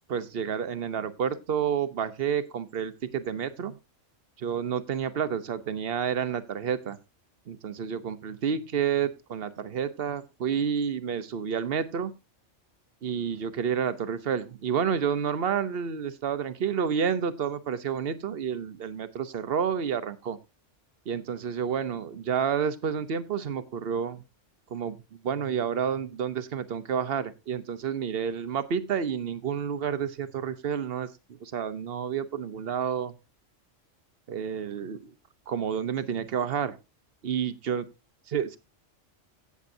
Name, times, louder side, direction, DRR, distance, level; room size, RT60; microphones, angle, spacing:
voice 1, 0.1-3.8 4.4-7.0 7.5-12.1 13.0-20.4 21.1-24.2 24.7-25.0 25.2-33.1 34.3-35.1 35.5-36.8 37.2-37.9 38.3-38.6, right 7 dB, 55° right, 13 dB, 1.0 m, -30 dB
16.5 x 7.3 x 2.7 m, 0.27 s
omnidirectional pair, 1.3 m